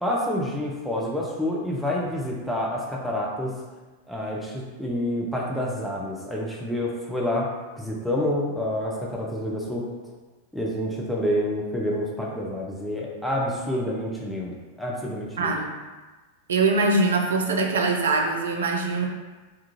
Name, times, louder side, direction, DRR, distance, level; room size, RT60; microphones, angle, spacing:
voice 1, 0.0-3.5 4.1-7.5 7.8-9.8 10.5-15.5, left 1 dB, ahead, -4 dB, 0.5 m, -28 dB
voice 2, 15.4-15.7 16.5-19.1, right 3 dB, 65° right, 2 dB, 0.3 m, -23 dB
2.3 x 2.3 x 2.9 m, 1.3 s
figure-of-eight pair, 90°, 0 cm